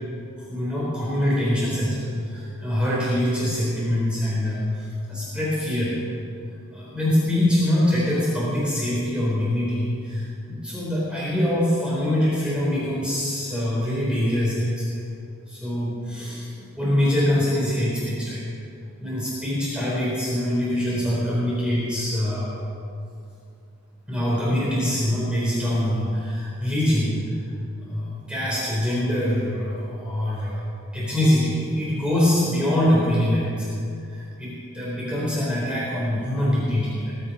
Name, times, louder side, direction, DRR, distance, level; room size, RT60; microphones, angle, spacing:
voice 1, 0.4-5.9 6.7-15.0 15.5-18.5 19.0-22.6 24.1-27.2 27.8-30.6 30.9-33.7 34.1-37.2, left 1 dB, 5° right, -8 dB, 3.8 m, -24 dB
20.5 x 11.0 x 5.5 m, 2.4 s
head